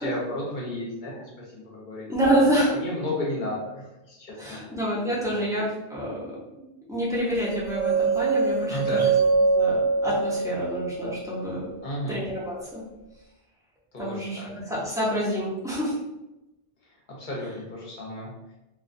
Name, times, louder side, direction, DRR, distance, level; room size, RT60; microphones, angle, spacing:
voice 1, 0.0-2.1 2.7-4.6 5.2-5.4 8.7-9.1 11.8-12.2 13.9-14.5 17.2-18.3, left 1 dB, 55° left, -4 dB, 0.8 m, -33 dB
voice 2, 2.1-2.7 4.4-6.3 6.6-9.1 9.5-11.7 12.1-12.8 14.0-16.0, right 1 dB, 5° right, -7 dB, 0.5 m, -27 dB
sound 1, 7.4-11.5, right 4 dB, 85° left, 0.8 m, -24 dB
2.3 x 2.2 x 2.5 m, 0.98 s
omnidirectional pair, 1.1 m